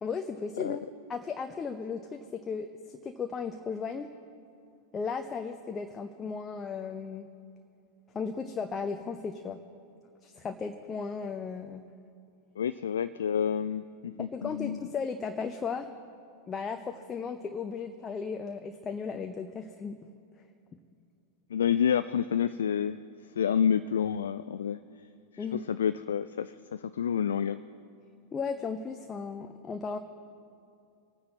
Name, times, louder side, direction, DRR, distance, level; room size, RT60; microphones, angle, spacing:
voice 1, 0.0-4.1 4.9-7.3 8.1-9.6 10.2-11.8 14.3-15.9 16.5-20.0 25.4-25.6 28.3-30.0, left 5 dB, 20° left, 6 dB, 0.6 m, -35 dB
voice 2, 12.6-14.8 21.5-23.0 23.4-24.8 25.3-27.6, left 8 dB, 65° left, 12 dB, 0.3 m, -29 dB
24.0 x 9.6 x 4.2 m, 2.5 s
figure-of-eight pair, 90°, 0 cm